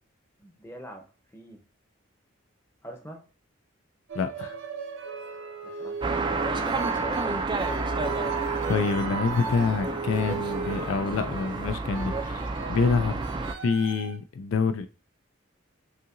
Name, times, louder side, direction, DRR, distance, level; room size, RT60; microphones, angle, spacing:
voice 1, 0.4-1.6 2.8-3.2 5.6-6.5 6.8-7.4, right 1 dB, 10° left, 0.7 m, -44 dB
voice 2, 4.1-4.6 8.7-13.2 13.6-14.9, left 5 dB, 80° left, 0.4 m, -26 dB
sound 1, 4.1-14.2, right 4 dB, 65° right, 0.6 m, -39 dB
Wind instrument woodwind instrument, 5.0-11.8, right 4 dB, 85° right, 0.9 m, -37 dB
sound 2, 6.0-13.5, right 3 dB, 20° right, 0.3 m, -30 dB
5.6 x 2.7 x 2.6 m
head